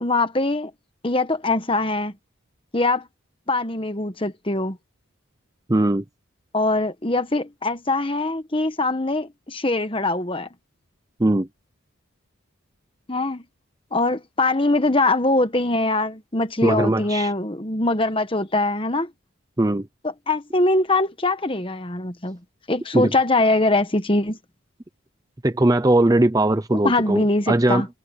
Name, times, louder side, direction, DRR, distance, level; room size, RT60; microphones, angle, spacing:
voice 1, 0.0-0.7 1.0-2.1 2.7-3.1 3.5-4.8 6.5-10.5 13.1-13.4 13.9-19.1 20.3-22.4 22.7-24.4 26.8-27.9, left 2 dB, 25° left, 1.3 m, -22 dB
voice 2, 5.7-6.0 11.2-11.5 16.6-17.3 19.6-19.9 22.9-23.1 25.4-27.8, right 1 dB, 15° right, 0.6 m, -19 dB
head